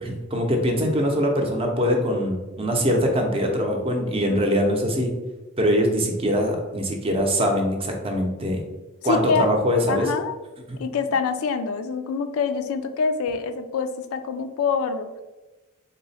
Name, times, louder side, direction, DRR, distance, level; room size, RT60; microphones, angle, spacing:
voice 1, 0.0-5.1 5.6-8.6 9.0-10.1 10.7-10.8, equal, 25° right, 2 dB, 0.6 m, -23 dB
voice 2, 9.0-9.5 9.9-10.3 10.8-15.1, left 5 dB, 75° left, 9 dB, 0.3 m, -25 dB
3.7 x 2.1 x 4.0 m, 1.1 s
head